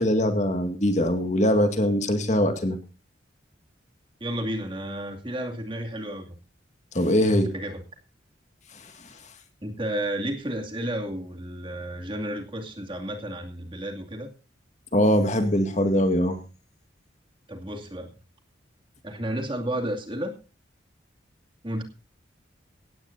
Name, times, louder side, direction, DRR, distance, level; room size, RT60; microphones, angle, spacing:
voice 1, 0.0-2.8 6.9-7.5 14.9-16.4, equal, 40° left, 7 dB, 2.0 m, -22 dB
voice 2, 4.2-6.3 7.2-7.8 9.6-14.3 17.5-18.1 19.0-20.3 21.6-21.8, right 1 dB, 25° right, 3 dB, 2.5 m, -32 dB
17.5 x 16.5 x 2.7 m, 0.32 s
head